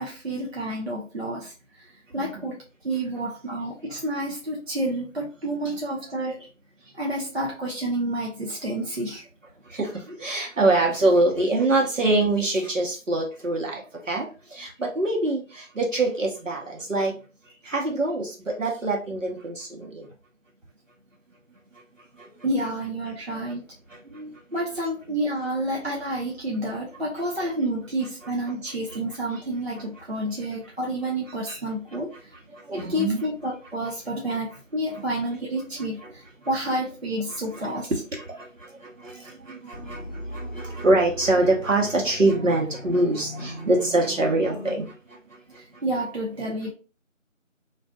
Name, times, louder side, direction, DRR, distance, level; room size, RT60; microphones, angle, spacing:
voice 1, 0.0-1.9 2.1-2.6 2.8-6.4 6.9-9.3 22.4-23.6 24.5-32.2 32.7-37.9 45.5-46.7, right 1 dB, 55° right, -2 dB, 0.5 m, -29 dB
voice 2, 2.1-2.5 6.3-6.4 9.7-17.1 17.6-20.1 22.2-22.3 23.9-24.3 28.7-29.0 29.3-29.4 31.5-31.6 32.5-33.3 34.9-35.1 36.0-36.1 37.3-37.7 38.1-45.2 45.5-45.6, right 2 dB, 75° right, -1 dB, 1.1 m, -25 dB
sound 1, 39.7-44.7, left 1 dB, 50° left, 0.6 m, -39 dB
2.5 x 2.3 x 2.2 m, 0.33 s
figure-of-eight pair, 175°, 39 cm